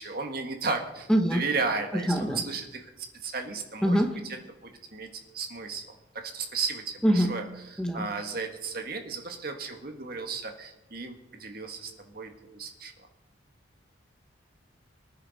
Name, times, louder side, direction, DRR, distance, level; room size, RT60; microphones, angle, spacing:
voice 1, 0.0-4.4 4.6-5.1 5.3-12.9, right 4 dB, 50° right, 5 dB, 1.7 m, -34 dB
voice 2, 1.1-1.4 2.1-2.4 3.8-4.1 7.0-7.3 7.8-8.1, equal, 5° left, 4 dB, 1.1 m, -23 dB
24.5 x 9.9 x 4.2 m, 0.99 s
head